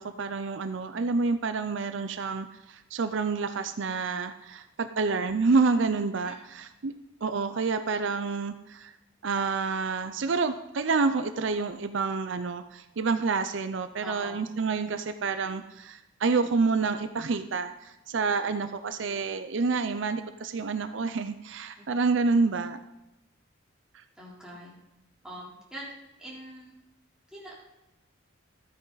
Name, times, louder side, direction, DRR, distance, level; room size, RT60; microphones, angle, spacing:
voice 1, 0.0-6.9 7.2-8.9 9.2-22.8 23.9-24.0, right 4 dB, 65° right, 9 dB, 0.5 m, -28 dB
voice 2, 14.0-14.4 21.8-21.9 24.2-24.7 25.2-25.9 26.2-26.7 27.3-27.5, right 1 dB, 5° right, -7 dB, 3.5 m, -43 dB
13.5 x 9.3 x 4.0 m, 0.92 s
head